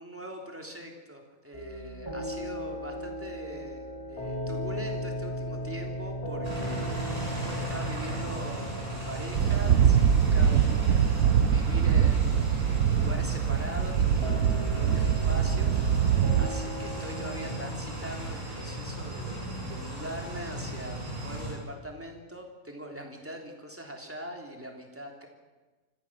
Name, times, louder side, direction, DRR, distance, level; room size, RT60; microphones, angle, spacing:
voice 1, 0.0-7.0 7.4-25.3, right 1 dB, 10° right, 2 dB, 3.3 m, -42 dB
sound 1, 1.5-17.6, equal, 20° left, 5.7 m, -38 dB
sound 2, 6.4-21.5, right 1 dB, 25° right, 6.2 m, -36 dB
sound 3, 9.3-16.5, right 8 dB, 90° right, 1.4 m, -23 dB
25.0 x 15.5 x 7.5 m, 1.3 s
omnidirectional pair, 1.5 m